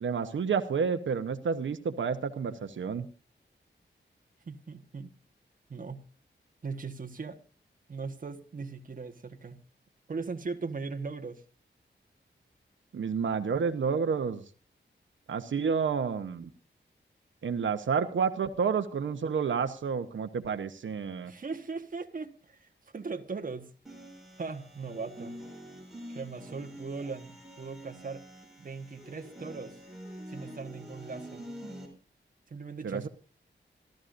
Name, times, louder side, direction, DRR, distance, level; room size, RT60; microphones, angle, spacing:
voice 1, 0.0-3.1 12.9-14.4 15.3-16.5 17.4-21.3 32.8-33.1, right 6 dB, 85° right, 8 dB, 1.0 m, -30 dB
voice 2, 4.4-5.1 5.7-6.0 6.6-7.4 7.9-9.6 10.1-11.4 21.2-23.7 24.4-25.4 26.1-28.2 28.6-29.8 30.3-31.4 32.5-33.1, right 4 dB, 45° right, 6 dB, 1.3 m, -39 dB
sound 1, 23.9-31.9, equal, ahead, 5.4 m, -46 dB
27.0 x 13.0 x 2.6 m, 0.36 s
wide cardioid pair, 130°, 19 cm